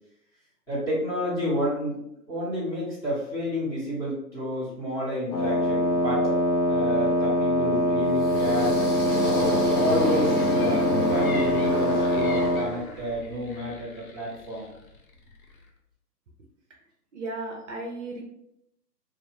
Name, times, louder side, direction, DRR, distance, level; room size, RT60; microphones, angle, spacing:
voice 1, 0.7-2.0 2.3-6.4 6.7-8.8 9.4-14.7, equal, 5° left, -10 dB, 1.1 m, -30 dB
Wind instrument woodwind instrument, 5.3-12.7, equal, 85° left, 1.0 m, -24 dB
sound 1, 8.0-13.2, left 1 dB, 30° left, 1.4 m, -29 dB
sound 2, 10.3-15.7, left 3 dB, 55° left, 0.8 m, -44 dB
voice 2, 17.1-18.2, right 2 dB, 45° right, 0 dB, 0.7 m, -35 dB
3.1 x 2.4 x 3.1 m, 0.78 s
hypercardioid pair, 135°, 50 cm